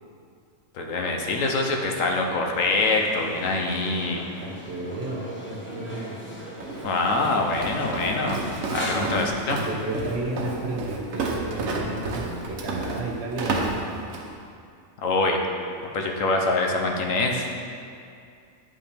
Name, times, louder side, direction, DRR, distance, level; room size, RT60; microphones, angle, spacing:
voice 1, 0.7-4.3 6.8-8.4 8.7-9.6 15.0-15.4 15.9-17.5, left 3 dB, 75° left, 2 dB, 1.2 m, -24 dB
sound 1, 2.5-9.0, equal, 10° left, 0.7 m, -38 dB
voice 2, 4.4-6.2 8.9-14.0, right 2 dB, 55° right, -2 dB, 1.3 m, -33 dB
Walk footsteps, 6.6-14.4, right 3 dB, 90° right, 1.3 m, -31 dB
9.7 x 5.5 x 3.4 m, 2.4 s
omnidirectional pair, 1.4 m